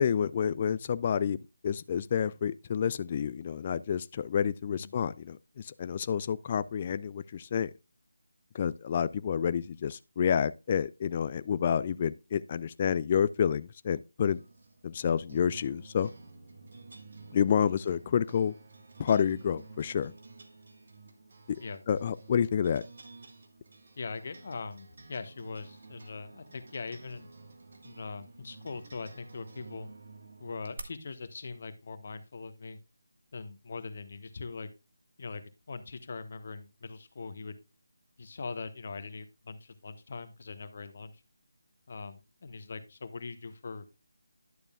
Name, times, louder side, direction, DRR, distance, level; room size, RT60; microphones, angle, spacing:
voice 1, 0.0-1.4 1.6-7.7 8.5-14.4 14.8-16.1 17.3-18.5 19.0-20.1 21.5-21.6 21.9-22.8, left 8 dB, 30° left, 0.3 m, -29 dB
sound 1, 14.3-30.8, right 3 dB, 55° right, 1.4 m, -51 dB
voice 2, 24.0-27.3 27.8-29.9 30.4-32.8 33.3-34.7 35.2-37.6 38.2-41.2 41.9-43.8, left 4 dB, 50° left, 1.1 m, -41 dB
11.0 x 6.8 x 2.3 m
figure-of-eight pair, 160°, 0 cm